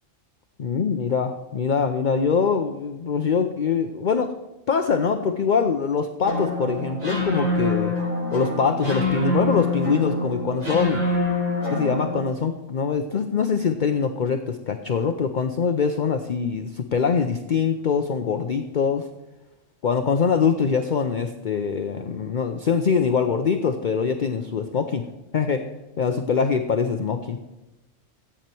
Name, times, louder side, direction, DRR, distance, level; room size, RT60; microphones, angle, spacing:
voice 1, 0.6-4.3 4.7-7.9 8.3-11.1 11.7-19.1 19.8-25.1 25.3-25.7 26.0-27.4, left 6 dB, 45° left, 7 dB, 0.7 m, -23 dB
sound 1, 6.2-12.3, left 2 dB, 70° right, 4.9 m, -25 dB
14.0 x 8.8 x 4.5 m, 1.0 s
omnidirectional pair, 1.4 m